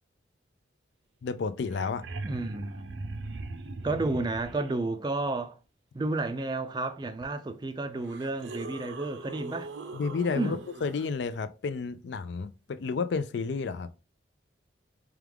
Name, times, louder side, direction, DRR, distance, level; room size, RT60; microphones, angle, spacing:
voice 1, 1.2-2.1 9.9-13.9, left 5 dB, 65° left, 0.4 m, -31 dB
sound 1, 1.3-1.4 1.6-4.7 7.2-7.3 8.0-11.1 13.6-13.7, right 2 dB, 80° right, 0.6 m, -40 dB
voice 2, 2.2-3.2 3.8-5.6 5.9-9.7 10.3-10.6, right 2 dB, 20° right, 0.4 m, -32 dB
4.7 x 2.4 x 3.4 m
head